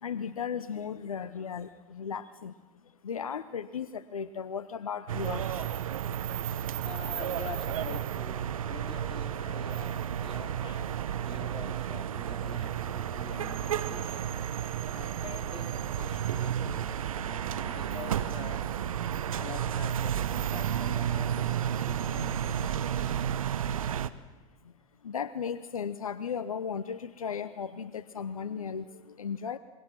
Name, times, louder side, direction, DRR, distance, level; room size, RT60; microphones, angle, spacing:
voice 1, 0.0-2.5 3.0-5.8 6.2-6.6 24.6-24.7 25.0-29.6, left 7 dB, 85° left, 14 dB, 0.8 m, -36 dB
sound 1, 5.1-24.1, right 9 dB, 80° right, 1.0 m, -32 dB
voice 2, 6.0-18.8 19.3-23.4 29.5-29.6, left 4 dB, 30° left, 3 dB, 4.4 m, -46 dB
28.5 x 23.0 x 6.2 m, 1.2 s
hypercardioid pair, 80°, 17 cm